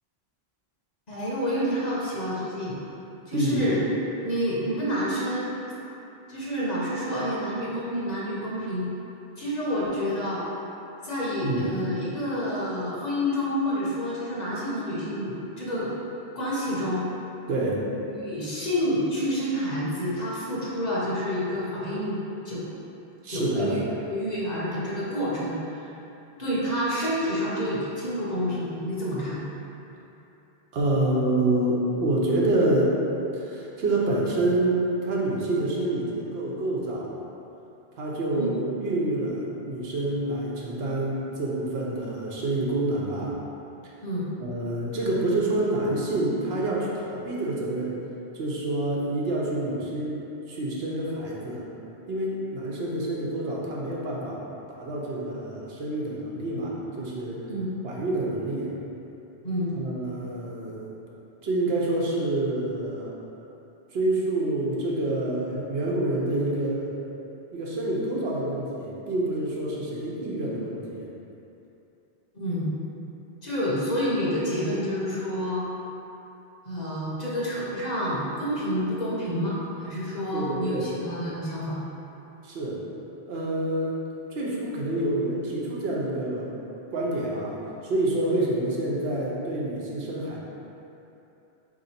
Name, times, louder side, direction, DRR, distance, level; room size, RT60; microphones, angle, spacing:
voice 1, 1.1-2.8 3.3-3.8 4.2-5.6 6.3-8.9 9.4-10.5 11.0-15.9 16.3-17.0 18.1-22.2 22.4-22.7 23.3-25.9 26.4-29.4 38.3-38.5 44.0-44.2 57.5-57.7 59.4-59.8 72.4-72.7 73.4-75.6 76.6-81.8, equal, 45° left, -7 dB, 0.9 m, -28 dB
voice 2, 3.3-3.7 11.4-11.7 17.5-17.8 23.2-23.7 30.7-33.0 33.3-37.1 38.0-43.4 44.4-48.0 48.3-50.2 50.5-51.7 52.1-54.4 54.7-57.5 57.8-58.7 59.8-60.9 61.4-63.1 63.9-66.9 67.5-71.1 80.3-80.9 82.4-82.8 83.3-84.0 84.3-86.5 86.9-90.4, right 1 dB, 75° right, -4 dB, 0.9 m, -27 dB
3.8 x 2.9 x 4.2 m, 2.9 s
omnidirectional pair, 1.1 m